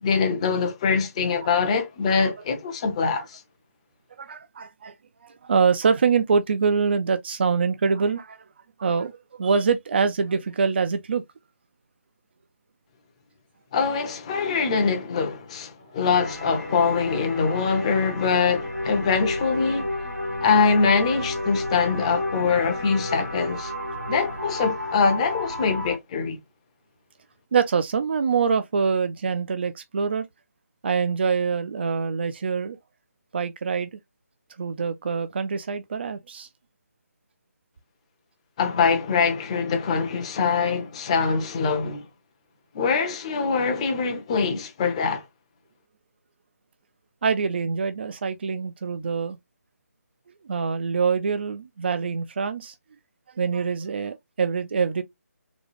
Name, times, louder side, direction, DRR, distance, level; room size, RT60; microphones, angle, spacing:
voice 1, 0.0-3.4 13.7-19.9 20.4-23.7 24.1-26.4 38.6-42.1 42.7-45.2, left 5 dB, 25° left, 0.7 m, -23 dB
voice 2, 4.2-4.9 5.2-8.4 8.8-11.2 27.5-30.3 30.8-32.8 33.3-34.0 34.6-36.5 47.2-49.4 50.4-52.7 53.4-55.0, right 5 dB, 40° right, 0.4 m, -24 dB
sound 1, 16.2-26.0, left 1 dB, 85° right, 2.1 m, -31 dB
4.0 x 2.3 x 3.3 m
figure-of-eight pair, 155°, 9 cm